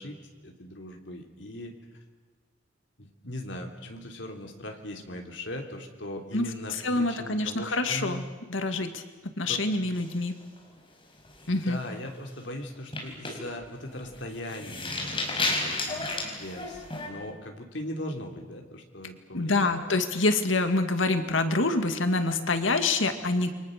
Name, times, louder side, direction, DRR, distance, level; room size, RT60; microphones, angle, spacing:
voice 1, 0.0-1.7 3.0-8.2 9.5-9.6 11.5-19.8, left 1 dB, 70° left, 3 dB, 3.3 m, -39 dB
voice 2, 6.8-10.3 11.5-11.8 19.3-23.5, left 2 dB, 85° left, 8 dB, 2.1 m, -26 dB
sound 1, 9.9-10.8 11.2-11.5 11.8-12.1 12.8-17.1, left 2 dB, 25° left, 4.8 m, -33 dB
29.0 x 24.0 x 6.6 m, 1.3 s
head